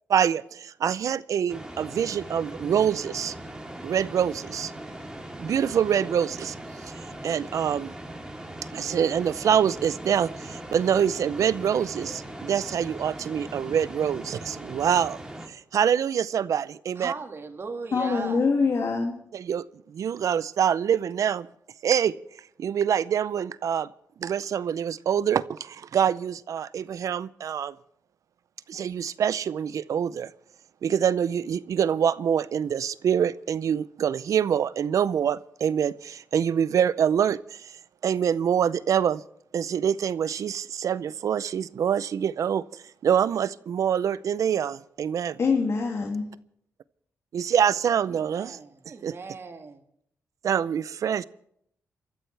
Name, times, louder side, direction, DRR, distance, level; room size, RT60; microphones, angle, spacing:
voice 1, 0.1-3.3 3.8-4.7 5.4-6.5 7.2-7.9 8.7-15.2 15.5-17.1 19.3-21.5 21.8-22.1 22.6-23.9 24.2-27.7 28.7-30.3 30.8-37.8 38.0-39.2 39.5-45.4 47.3-48.6 49.0-49.1 50.4-51.2, right 8 dB, 70° right, 0.5 m, -25 dB
sound 1, 1.5-15.5, right 1 dB, 10° right, 3.2 m, -40 dB
voice 2, 17.0-18.5 48.1-49.8, right 4 dB, 45° right, 1.9 m, -38 dB
voice 3, 17.9-19.2 45.4-46.3, left 4 dB, 60° left, 2.4 m, -24 dB
29.0 x 14.0 x 3.3 m
cardioid pair, 80°, 6 cm